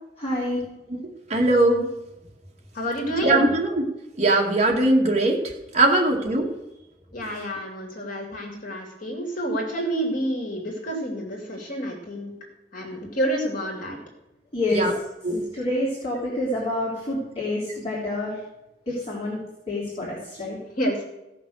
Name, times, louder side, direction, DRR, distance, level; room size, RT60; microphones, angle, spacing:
voice 1, 0.2-0.6 14.5-14.9 15.5-18.4 18.9-19.4 19.7-20.6, left 1 dB, 35° left, -6 dB, 3.4 m, -27 dB
voice 2, 1.3-1.9 3.2-3.8 4.1-6.5 14.7-14.9 15.2-15.5, right 2 dB, 40° right, 0 dB, 2.2 m, -21 dB
voice 3, 2.7-3.5 7.1-12.3 12.7-14.0 20.8-21.0, right 1 dB, 50° left, 0 dB, 2.8 m, -28 dB
16.5 x 5.9 x 6.4 m, 0.92 s
head